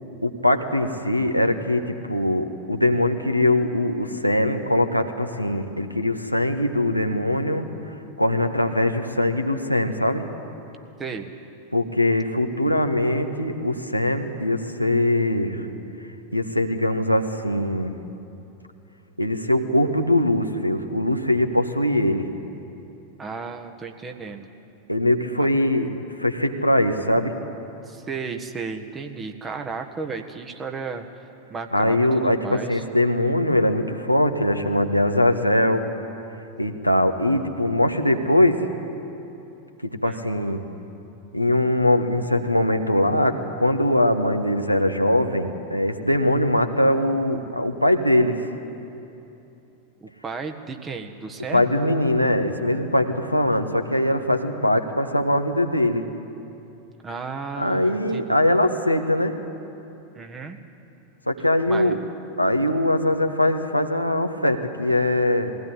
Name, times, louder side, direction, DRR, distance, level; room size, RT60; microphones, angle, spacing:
voice 1, 0.2-10.2 11.7-15.7 16.3-17.9 19.2-22.3 24.9-25.9 26.2-27.3 31.7-35.9 36.6-38.7 39.8-40.6 41.3-48.4 51.5-56.1 57.6-59.4 61.3-62.0 62.4-65.5, left 1 dB, 90° left, 5 dB, 1.3 m, -21 dB
voice 2, 11.0-11.3 23.2-24.5 25.4-25.5 27.9-31.2 31.5-32.8 40.0-40.2 50.0-51.7 57.0-58.4 60.1-60.6 61.7-62.0, right 4 dB, 20° right, 5 dB, 1.6 m, -34 dB
21.0 x 16.5 x 10.0 m, 2.9 s
figure-of-eight pair, 90°, 0 cm